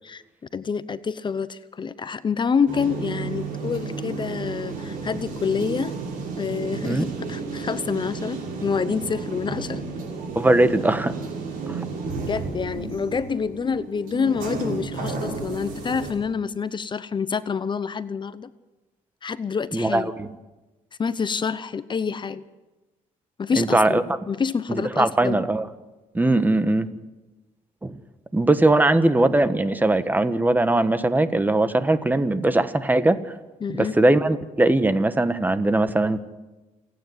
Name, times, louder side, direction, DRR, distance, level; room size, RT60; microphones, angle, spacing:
voice 1, 0.5-5.9 6.4-9.8 12.3-18.5 19.2-20.1 21.0-22.5 23.4-25.4 33.6-34.0, left 6 dB, 35° left, 14 dB, 0.8 m, -27 dB
sound 1, 2.7-16.1, right 4 dB, 90° right, 5.9 m, -32 dB
voice 2, 10.3-11.1 11.7-11.9 19.7-20.3 23.6-24.0 24.7-25.7 26.1-26.9 27.8-27.9 28.3-33.2 33.7-36.2, right 2 dB, 10° right, 12 dB, 1.2 m, -20 dB
28.0 x 9.6 x 9.7 m, 1.1 s
cardioid pair, 95°, 14 cm